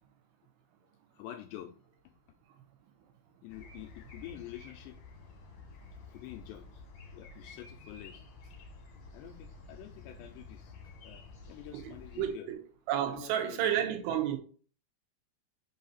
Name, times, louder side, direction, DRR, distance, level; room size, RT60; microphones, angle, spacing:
voice 1, 1.1-1.7 3.4-5.0 6.1-6.8 7.1-8.2 9.1-10.7 11.0-12.5 13.1-13.9, left 13 dB, 85° left, 2.5 m, -47 dB
sound 1, 3.5-12.3, left 3 dB, 70° left, 1.7 m, -51 dB
voice 2, 11.7-12.6 12.9-14.4, right 10 dB, 85° right, 3.4 m, -31 dB
7.0 x 2.7 x 5.5 m
omnidirectional pair, 5.3 m